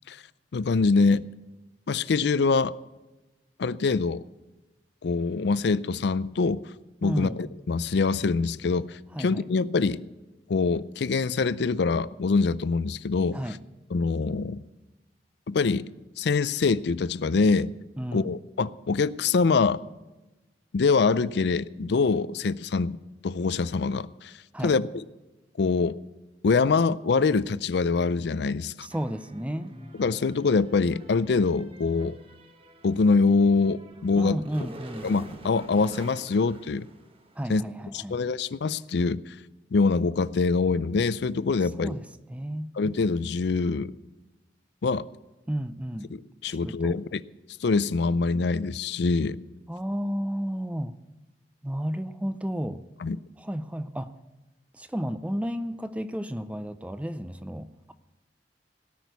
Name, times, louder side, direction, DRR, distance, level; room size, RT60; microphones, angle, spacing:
voice 1, 0.5-1.3 1.9-2.7 3.6-4.2 5.0-6.6 7.0-8.9 9.2-10.0 10.5-13.4 13.9-14.6 15.5-15.9 16.2-17.7 18.1-19.8 20.7-23.0 23.2-24.3 24.6-24.9 25.6-26.0 26.4-28.9 29.9-32.2 32.8-34.4 35.0-36.9 37.5-37.6 37.9-39.3 39.7-41.9 42.8-43.9 44.8-45.0 46.1-47.2 47.6-49.4 53.0-53.2, left 4 dB, 65° left, 0.4 m, -24 dB
voice 2, 7.0-7.4 9.1-9.4 13.3-13.6 18.0-18.3 24.5-24.8 28.8-29.7 34.2-35.1 37.4-38.2 41.8-42.0 42.3-42.7 45.5-46.1 46.5-47.0 49.7-51.0 51.6-52.8 53.4-54.1 54.7-57.9, equal, 5° right, 0.4 m, -32 dB
sound 1, 28.9-37.6, right 1 dB, 30° right, 1.3 m, -48 dB
17.5 x 6.2 x 8.1 m
head